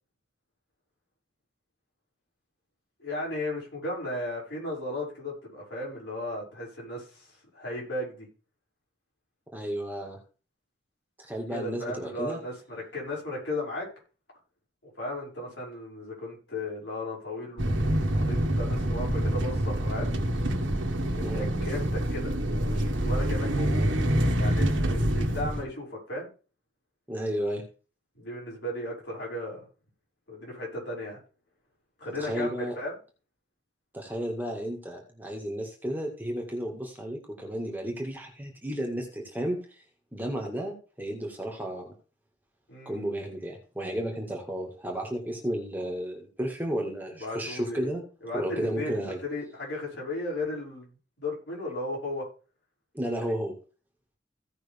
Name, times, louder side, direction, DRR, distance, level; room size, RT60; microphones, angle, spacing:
voice 1, 3.0-8.3 11.5-13.9 14.8-20.2 21.1-22.3 22.6-23.9 24.4-26.3 28.1-29.7 30.3-31.2 32.0-32.9 42.7-43.1 47.2-47.9 48.2-50.9 51.2-52.3, left 1 dB, 70° left, -4 dB, 6.3 m, -35 dB
voice 2, 9.5-10.2 11.2-12.4 21.2-21.5 27.1-27.6 32.2-32.8 33.9-39.6 40.1-41.9 42.9-48.0 48.3-49.2 52.9-53.5, equal, 10° right, 1 dB, 1.8 m, -33 dB
sound 1, 17.6-25.6, right 1 dB, 80° right, 1.6 m, -26 dB
16.5 x 5.7 x 3.5 m, 0.35 s
head